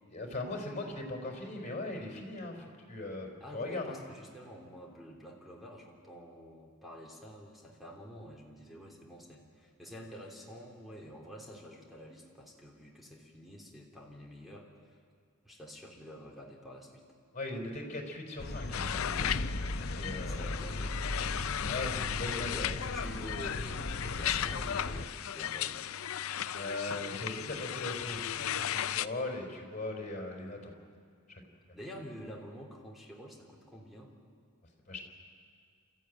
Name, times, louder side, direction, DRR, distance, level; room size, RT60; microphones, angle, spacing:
voice 1, 0.1-4.0 17.3-19.3 19.8-20.6 21.7-22.7 26.5-30.7 31.3-31.4 34.9-35.0, left 2 dB, 35° left, 1 dB, 4.1 m, -39 dB
voice 2, 3.4-14.7 15.4-17.1 19.8-20.9 22.2-25.8 31.7-34.1, equal, ahead, -1 dB, 3.3 m, -48 dB
sound 1, 18.4-25.1, left 1 dB, 50° left, 1.0 m, -37 dB
sound 2, 18.7-29.1, left 10 dB, 85° left, 0.5 m, -36 dB
27.5 x 14.0 x 9.2 m, 2.1 s
head